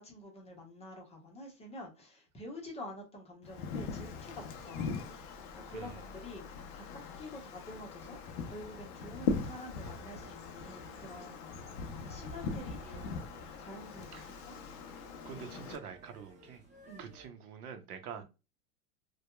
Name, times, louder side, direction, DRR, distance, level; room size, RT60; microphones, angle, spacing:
voice 1, 0.0-5.2 5.5-11.6 12.1-14.5 16.8-17.1 18.1-18.2, left 1 dB, 15° left, 0.8 m, -48 dB
Wind, 3.4-15.8, left 5 dB, 35° left, 0.4 m, -41 dB
voice 2, 5.7-6.0 14.1-14.3 15.2-16.6 17.0-18.2, right 7 dB, 70° right, 0.7 m, -46 dB
sound 1, 8.0-17.3, right 2 dB, 20° right, 1.1 m, -59 dB
2.7 x 2.2 x 2.2 m
hypercardioid pair, 115°, 46 cm